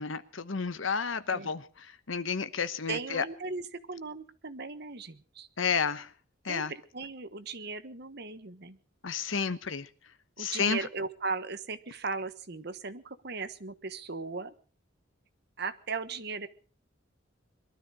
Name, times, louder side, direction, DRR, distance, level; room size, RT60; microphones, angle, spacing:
voice 1, 0.0-3.2 5.6-6.1 6.4-6.7 9.0-9.9 10.4-10.8, left 5 dB, 80° left, 1.1 m, -31 dB
voice 2, 2.9-5.5 6.5-8.8 10.4-14.5 15.6-16.5, right 4 dB, 55° right, 1.3 m, -37 dB
22.5 x 13.0 x 4.9 m
head